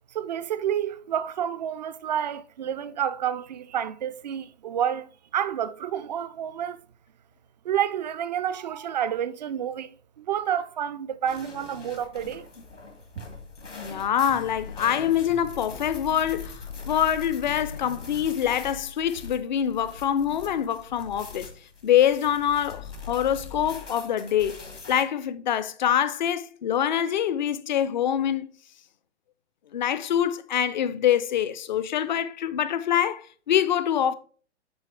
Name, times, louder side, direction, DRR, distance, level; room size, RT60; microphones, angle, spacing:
voice 1, 0.1-6.8 7.6-12.5, right 9 dB, 35° right, 0.5 m, -29 dB
sound 1, 11.3-25.0, left 4 dB, 80° left, 1.9 m, -41 dB
voice 2, 13.7-21.5 21.8-24.6 24.9-28.5 29.7-34.1, left 10 dB, 40° left, 0.5 m, -25 dB
9.5 x 4.2 x 3.2 m
figure-of-eight pair, 120°, 36 cm